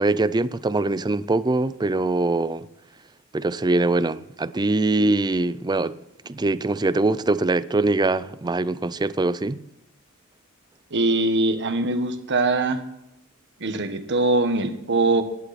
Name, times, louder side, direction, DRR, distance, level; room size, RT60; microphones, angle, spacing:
voice 1, 0.0-2.6 3.3-6.0 6.3-9.6, right 2 dB, 20° right, 0.5 m, -23 dB
voice 2, 10.9-12.8 13.6-15.2, right 2 dB, 55° right, 1.4 m, -22 dB
16.5 x 11.0 x 4.2 m
head